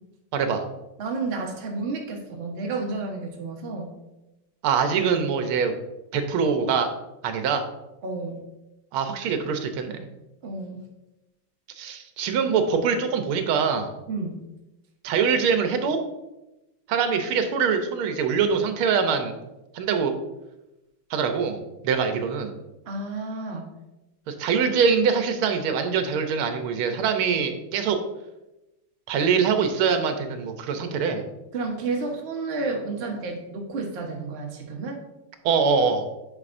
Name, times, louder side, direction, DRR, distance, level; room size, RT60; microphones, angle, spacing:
voice 1, 0.3-0.6 4.6-5.7 6.1-6.9 7.2-7.6 8.9-10.1 11.8-13.9 15.0-16.0 16.9-19.3 19.7-20.2 21.1-22.6 24.3-28.0 29.1-31.2 35.5-36.1, right 6 dB, 80° right, 7 dB, 1.6 m, -23 dB
voice 2, 1.0-3.9 8.0-8.4 10.4-10.8 14.1-14.4 22.9-23.7 31.5-35.0, right 3 dB, 45° right, 0 dB, 0.9 m, -31 dB
9.9 x 4.9 x 2.5 m, 0.97 s
omnidirectional pair, 2.4 m